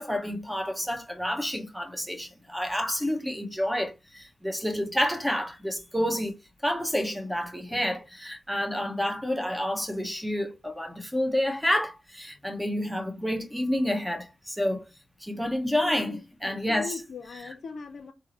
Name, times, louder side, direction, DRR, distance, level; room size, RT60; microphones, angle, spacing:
voice 1, 0.0-14.8 15.2-16.9, equal, 5° right, 1.0 m, -29 dB
voice 2, 15.8-18.1, left 4 dB, 65° left, 0.5 m, -40 dB
3.7 x 2.0 x 2.9 m
supercardioid pair, 45°, 0 cm